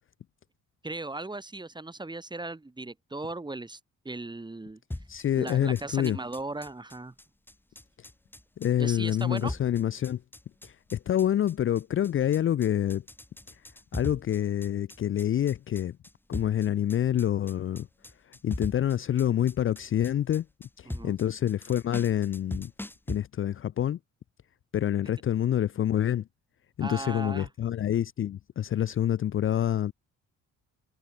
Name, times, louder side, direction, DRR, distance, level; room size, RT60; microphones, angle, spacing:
voice 1, 0.8-3.8 4.0-4.8 5.4-7.1 8.8-9.5 20.9-21.2 26.8-27.5, right 2 dB, 15° right, 2.2 m, -37 dB
sound 1, 4.9-23.2, left 1 dB, 5° left, 1.2 m, -41 dB
voice 2, 5.1-6.2 8.6-10.2 10.6-13.0 13.9-16.0 16.3-17.9 18.3-20.5 20.8-22.7 23.1-24.0 24.7-26.3 26.8-29.9, left 11 dB, 45° left, 0.5 m, -27 dB
cardioid pair, 90°, 30 cm